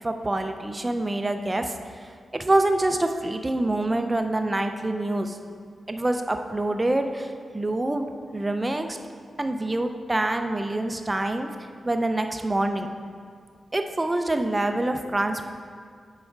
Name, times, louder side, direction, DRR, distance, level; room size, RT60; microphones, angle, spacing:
voice 1, 0.0-1.7 2.3-5.4 5.9-8.1 8.3-9.0 9.4-11.5 11.8-12.9 13.7-15.4, right 2 dB, 20° right, 6 dB, 0.5 m, -26 dB
7.9 x 4.8 x 4.6 m, 2.1 s
wide cardioid pair, 95°, 0 cm